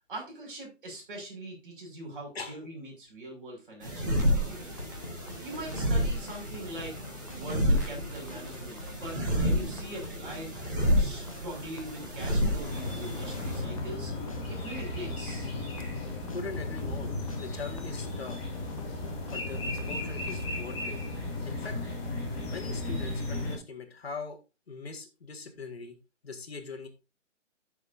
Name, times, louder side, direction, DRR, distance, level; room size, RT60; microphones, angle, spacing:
voice 1, 0.1-4.7 5.4-7.0 7.3-10.5 11.0-14.1 14.5-15.5, right 1 dB, 45° right, 0 dB, 5.9 m, -42 dB
sound 1, 3.8-13.6, equal, 15° right, 1.5 m, -30 dB
sound 2, 4.7-20.6, left 2 dB, 30° left, 0.8 m, -46 dB
sound 3, 12.6-23.5, left 2 dB, 10° left, 1.9 m, -35 dB
voice 2, 16.3-18.4 19.2-19.6 19.9-21.0 21.4-21.8 22.5-24.4 24.7-25.9 26.2-26.9, left 4 dB, 55° left, 4 dB, 1.8 m, -41 dB
13.5 x 6.8 x 2.6 m, 0.28 s
hypercardioid pair, 180°, 38 cm